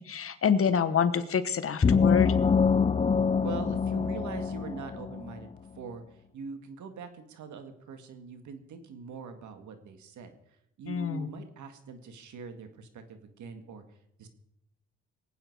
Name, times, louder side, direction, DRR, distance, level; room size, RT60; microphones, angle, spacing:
voice 1, 0.0-2.4 10.9-11.3, left 7 dB, 45° left, 12 dB, 1.2 m, -27 dB
sound 1, 1.8-5.4, left 5 dB, 20° left, 0.5 m, -25 dB
voice 2, 3.4-10.3 10.8-13.8 14.2-14.3, right 5 dB, 70° right, 8 dB, 2.0 m, -43 dB
24.0 x 9.2 x 4.7 m, 0.79 s
cardioid pair, 90°, 30 cm